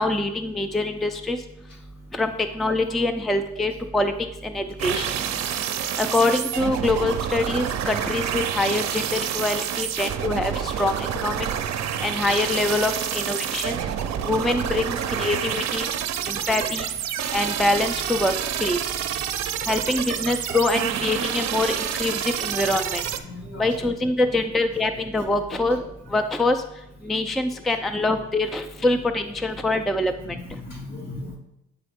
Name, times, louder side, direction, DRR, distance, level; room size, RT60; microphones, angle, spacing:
voice 1, 0.0-1.4 2.1-4.1 4.4-5.1 6.0-11.5 12.0-13.8 14.2-15.9 16.3-16.9 17.3-18.3 18.6-18.8 19.7-23.0 23.6-25.8 26.1-26.6 27.0-30.1, left 2 dB, ahead, 7 dB, 0.3 m, -24 dB
sound 1, 4.8-23.2, right 9 dB, 65° right, 0.6 m, -28 dB
voice 2, 19.4-19.7 23.3-23.8 25.7-25.8 30.2-31.4, left 2 dB, 65° left, -1 dB, 2.7 m, -38 dB
8.9 x 3.8 x 3.5 m, 0.83 s
cardioid pair, 90°, 30 cm